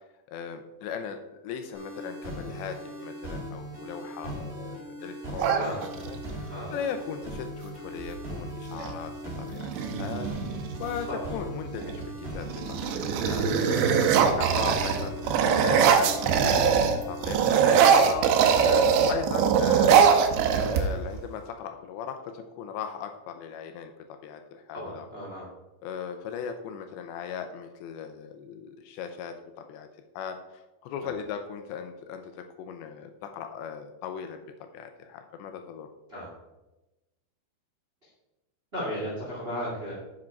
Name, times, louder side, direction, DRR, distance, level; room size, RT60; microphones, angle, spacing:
voice 1, 0.3-1.2 1.4-9.1 9.4-9.7 10.0-10.3 10.8-14.0 14.4-20.0 20.6-25.1 25.8-29.9 30.2-32.3 32.6-34.4 34.7-35.9, left 7 dB, 85° left, 6 dB, 2.7 m, -38 dB
sound 1, 1.7-17.7, equal, 20° right, 2.1 m, -39 dB
sound 2, 5.4-6.3 8.0-8.2 8.5-9.0 9.5-11.0 11.7-12.1 12.4-17.0 17.2-21.2, right 7 dB, 80° right, 2.9 m, -22 dB
voice 2, 5.5-5.9 6.5-6.9 11.1-11.3 18.7-18.9 24.7-25.5 31.0-31.2 36.1-36.3 38.0-38.1 38.7-39.9, equal, 40° right, -5 dB, 0.8 m, -35 dB
7.5 x 7.3 x 4.5 m, 1.0 s
omnidirectional pair, 5.4 m